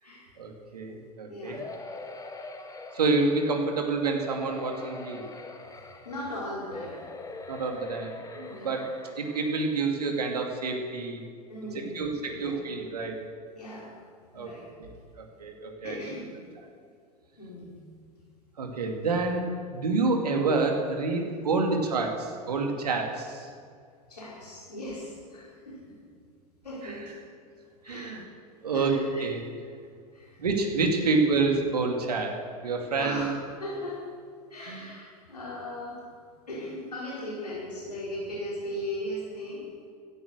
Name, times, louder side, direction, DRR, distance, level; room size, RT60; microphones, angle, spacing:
voice 1, 0.4-1.6 2.9-5.2 7.5-8.9 9.2-11.2 11.9-13.2 14.3-14.5 14.8-14.9 15.2-16.0 18.6-19.4 19.7-23.5 26.8-26.9 27.8-28.2 28.6-28.9 29.2-29.4 30.4-32.3 32.6-33.4 34.6-34.9, right 3 dB, 80° right, 2 dB, 2.4 m, -28 dB
sound 1, 1.5-3.7 4.1-6.3 6.7-9.6 10.1-10.2 10.5-10.6, left 3 dB, 15° left, 1.9 m, -43 dB
voice 2, 6.0-7.0 8.5-8.8 11.5-12.6 13.5-13.9 14.3-14.7 15.8-16.4 17.3-17.8 21.5-21.7 24.1-26.0 26.6-27.2 27.8-28.2 28.7-29.3 30.1-30.4 31.0-31.1 32.9-33.3 33.6-34.0 34.5-36.0 36.5-39.6, left 1 dB, 90° left, -7 dB, 4.6 m, -38 dB
16.0 x 11.0 x 6.6 m, 2.2 s
hypercardioid pair, 90°, 20 cm